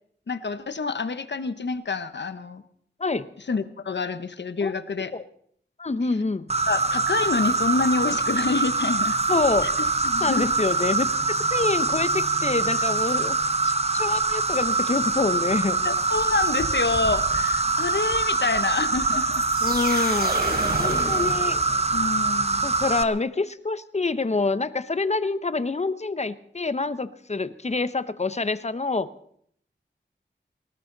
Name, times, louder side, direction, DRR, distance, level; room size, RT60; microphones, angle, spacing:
voice 1, 0.3-2.6 3.5-5.1 6.7-9.2 9.6-9.7 10.0-10.5 15.8-19.4 20.9-21.1 21.9-22.7, left 4 dB, 70° left, 12 dB, 1.1 m, -27 dB
voice 2, 5.8-6.5 9.3-9.7 10.2-11.1 11.5-13.4 13.6-15.8 19.6-20.3 20.8-21.6 22.6-29.1, left 3 dB, 35° left, 14 dB, 0.8 m, -26 dB
Insect, 6.5-23.0, right 3 dB, 35° right, 0.9 m, -24 dB
sound 1, 19.3-22.1, right 2 dB, 55° right, 3.9 m, -31 dB
19.5 x 18.5 x 4.0 m, 0.65 s
wide cardioid pair, 80°, 19 cm